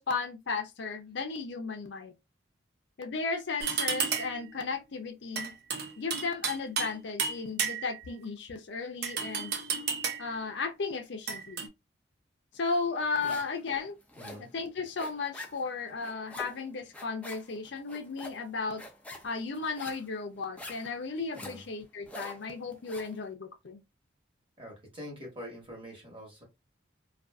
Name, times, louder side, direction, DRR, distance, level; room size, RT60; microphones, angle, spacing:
voice 1, 0.0-2.1 3.0-5.5 6.0-9.5 10.2-11.7 12.5-14.0 14.4-18.8 19.2-23.8, left 4 dB, 65° left, 0.5 m, -35 dB
sound 1, 3.6-4.5 5.4-6.9 7.2-8.1 9.0-10.4 11.3-11.7, right 6 dB, 55° right, 0.5 m, -32 dB
sound 2, 12.7-13.6 13.9-23.2, left 1 dB, 5° left, 0.4 m, -46 dB
voice 2, 14.1-14.5 21.3-21.6 24.6-26.4, equal, 25° right, 1.2 m, -45 dB
2.5 x 2.3 x 2.3 m
head